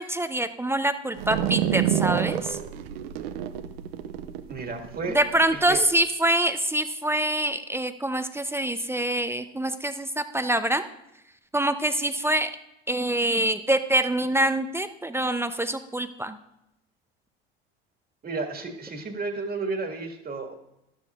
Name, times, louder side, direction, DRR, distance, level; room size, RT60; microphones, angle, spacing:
voice 1, 0.0-2.6 5.1-10.9 11.5-12.5 12.9-16.4, right 1 dB, 10° right, 9 dB, 0.6 m, -25 dB
Plastic ball rolling, 1.2-5.8, right 11 dB, 80° right, 0.7 m, -28 dB
voice 2, 4.5-5.2 5.5-5.8 18.2-20.5, right 3 dB, 30° right, 4 dB, 1.9 m, -32 dB
12.0 x 12.0 x 2.4 m, 0.85 s
hypercardioid pair, 80°, 30 cm